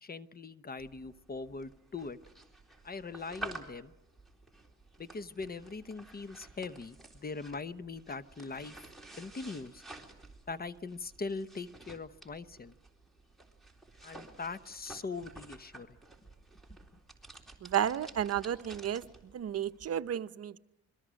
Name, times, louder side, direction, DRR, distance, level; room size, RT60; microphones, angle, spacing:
voice 1, 0.0-2.2 2.8-3.9 5.0-8.8 9.2-9.8 10.5-12.7 14.0-16.0, left 4 dB, 30° left, 13 dB, 1.0 m, -41 dB
sound 1, 0.8-19.9, right 2 dB, ahead, 3.8 m, -51 dB
voice 2, 17.6-19.0 19.3-20.6, right 10 dB, 55° right, 11 dB, 0.8 m, -32 dB
28.0 x 22.5 x 6.4 m, 0.87 s
cardioid pair, 90°, 30 cm